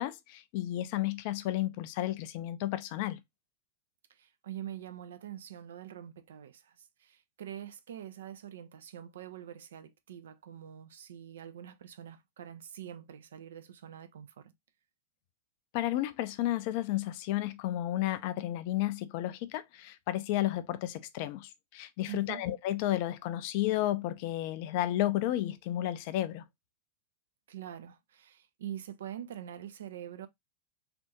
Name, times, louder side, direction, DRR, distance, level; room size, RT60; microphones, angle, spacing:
voice 1, 0.0-3.2 15.7-26.4, left 14 dB, 45° left, 0.4 m, -32 dB
voice 2, 4.1-14.5 22.1-22.4 27.5-30.3, right 10 dB, 60° right, 0.4 m, -45 dB
3.4 x 2.5 x 2.8 m
figure-of-eight pair, 90°, 0 cm